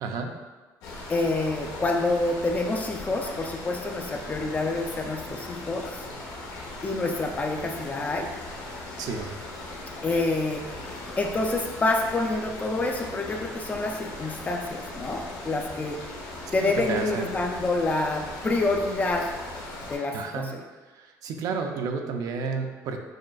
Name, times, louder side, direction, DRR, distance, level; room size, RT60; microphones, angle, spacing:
voice 1, 0.0-0.3 9.0-9.4 16.6-17.3 20.1-20.6 20.9-23.0, right 5 dB, 65° right, 4 dB, 0.4 m, -31 dB
sound 1, 0.8-20.0, left 2 dB, 85° left, 0.9 m, -39 dB
voice 2, 1.1-5.8 6.8-8.3 10.0-10.6 11.2-16.0 16.5-19.3 19.9-20.6, left 2 dB, 25° left, 2 dB, 0.4 m, -27 dB
6.2 x 2.4 x 2.3 m, 1.3 s
cardioid pair, 125°, 7 cm